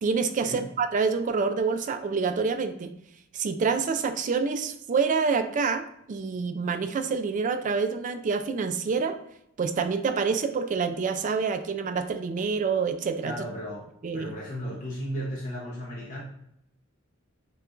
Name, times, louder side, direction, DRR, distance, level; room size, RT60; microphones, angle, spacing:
voice 1, 0.0-2.9 3.3-9.2 9.6-13.3 14.0-14.3, right 5 dB, 40° right, 8 dB, 0.3 m, -27 dB
voice 2, 13.2-13.9 14.1-16.2, equal, 40° left, -6 dB, 0.9 m, -35 dB
6.5 x 2.3 x 2.5 m, 0.76 s
head